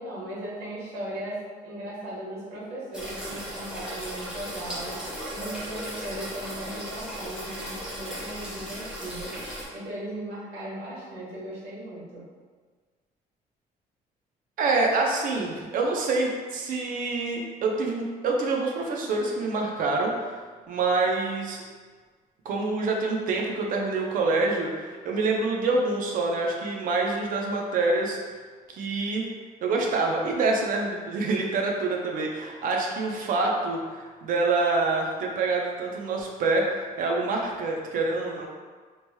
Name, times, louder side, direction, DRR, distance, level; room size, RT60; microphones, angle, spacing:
voice 1, 0.0-1.4 1.6-5.0 5.3-9.3 9.7-12.2, right 1 dB, 90° right, -8 dB, 1.3 m, -37 dB
sound 1, 2.9-9.7, equal, 5° right, 0.9 m, -36 dB
voice 2, 14.6-20.3 20.7-21.6 22.4-28.2 28.7-29.3 29.6-38.5, right 3 dB, 60° right, 0 dB, 0.5 m, -26 dB
3.0 x 2.9 x 2.2 m, 1.5 s
cardioid pair, 125°, 16 cm